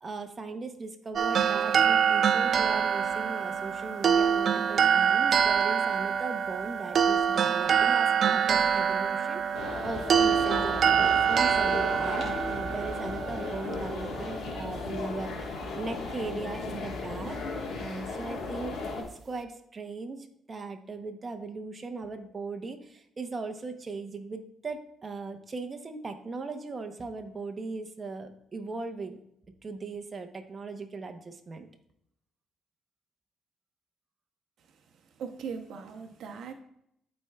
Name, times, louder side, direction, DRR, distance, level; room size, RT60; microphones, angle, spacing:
voice 1, 0.0-17.4 17.8-29.2 29.6-31.7, right 3 dB, 35° right, 6 dB, 0.8 m, -39 dB
sound 1, 1.2-14.4, right 7 dB, 55° right, 0.3 m, -25 dB
sound 2, 9.5-19.0, left 3 dB, 65° left, 1.4 m, -35 dB
voice 2, 35.2-36.5, right 6 dB, 70° right, 4 dB, 0.7 m, -39 dB
12.0 x 4.4 x 2.3 m, 0.75 s
cardioid pair, 90°, 0 cm